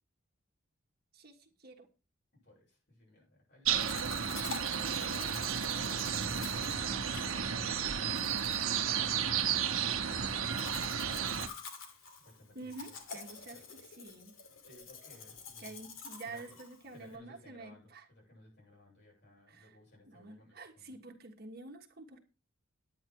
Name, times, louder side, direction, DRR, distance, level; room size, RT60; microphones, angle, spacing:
voice 1, 1.1-1.9 12.5-14.3 15.6-18.1 19.5-19.8 20.1-22.2, right 3 dB, 50° right, 4 dB, 1.5 m, -48 dB
voice 2, 2.4-5.1 5.9-8.4 12.2-13.2 13.5-13.6 14.6-15.8 16.2-16.6 16.9-20.8, left 1 dB, 55° left, -1 dB, 7.6 m, -59 dB
sound 1, 3.6-11.5, right 8 dB, 85° right, 1.0 m, -33 dB
Domestic sounds home sounds, 3.8-17.2, left 5 dB, 85° left, 2.5 m, -48 dB
10.0 x 9.7 x 4.6 m, 0.32 s
head